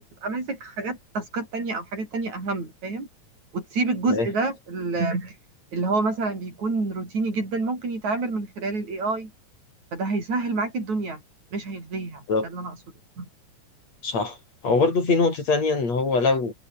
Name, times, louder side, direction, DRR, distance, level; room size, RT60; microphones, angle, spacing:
voice 1, 0.2-3.1 3.5-5.4 5.7-9.3 9.9-11.2 11.5-12.8 13.2-13.3, right 3 dB, 70° right, 9.0 m, -28 dB
voice 2, 14.0-14.4 14.6-16.5, left 3 dB, 60° left, 6.9 m, -22 dB
omnidirectional pair, 3.4 m